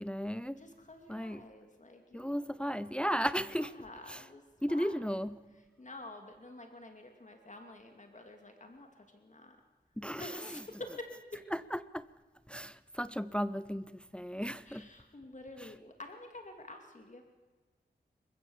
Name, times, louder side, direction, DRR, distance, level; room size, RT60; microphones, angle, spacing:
voice 1, 0.0-0.6 1.1-1.5 2.1-3.7 4.1-4.2 4.6-5.5 10.0-10.6 11.5-12.0 12.5-14.9 15.6-15.7, equal, 5° left, 0.6 m, -35 dB
voice 2, 0.6-2.6 3.5-4.4 4.7-4.9 5.8-9.6 10.1-11.1 14.7-17.2, left 2 dB, 40° left, 2.5 m, -49 dB
27.5 x 16.0 x 7.2 m
cardioid pair, 65°, 18 cm